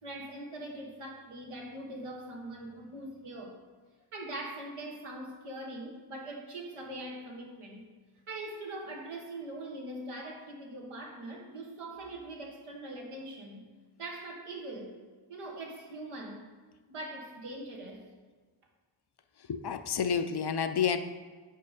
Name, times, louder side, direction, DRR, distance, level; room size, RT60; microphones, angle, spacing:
voice 1, 0.0-3.6 4.1-7.9 8.3-13.7 14.0-15.0 15.3-16.5 16.9-18.1, right 1 dB, 85° right, -1 dB, 1.3 m, -42 dB
voice 2, 19.5-21.0, left 7 dB, 55° left, 9 dB, 0.5 m, -29 dB
5.3 x 4.6 x 4.8 m, 1.4 s
cardioid pair, 50°, 50 cm